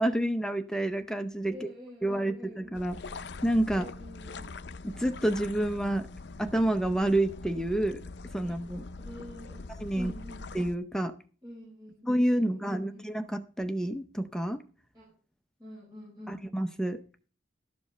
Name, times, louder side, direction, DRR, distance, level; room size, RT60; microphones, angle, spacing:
voice 1, 0.0-1.7 2.0-3.0 3.4-3.9 4.8-6.1 6.4-8.0 8.3-8.8 9.8-10.1 10.5-11.1 12.1-14.6 16.3-17.0, right 1 dB, 5° left, 8 dB, 0.6 m, -28 dB
voice 2, 1.5-2.6 3.7-4.5 8.4-8.5 9.0-9.6 9.9-10.5 11.4-12.1 12.3-13.0 14.9-15.1 15.6-16.4, left 1 dB, 20° right, -6 dB, 4.7 m, -46 dB
sound 1, 2.7-10.8, left 3 dB, 60° left, 0.5 m, -43 dB
12.5 x 5.2 x 6.6 m, 0.39 s
head